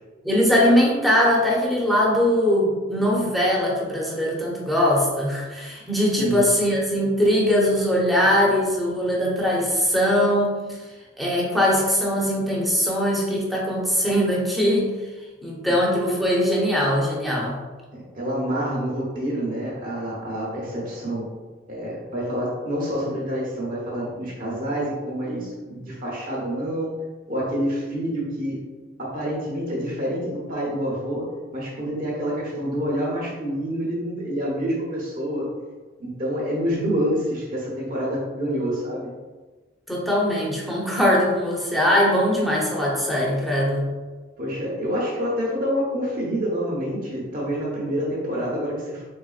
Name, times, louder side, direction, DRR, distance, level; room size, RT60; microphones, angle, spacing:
voice 1, 0.2-10.8 11.2-14.9 15.4-17.6 39.9-43.9, equal, ahead, -4 dB, 0.7 m, -21 dB
voice 2, 17.9-21.3 21.7-26.9 27.3-28.6 29.0-31.3 31.5-35.5 36.0-39.1 44.4-49.0, equal, 45° right, -4 dB, 0.9 m, -27 dB
4.1 x 3.2 x 2.4 m, 1.3 s
head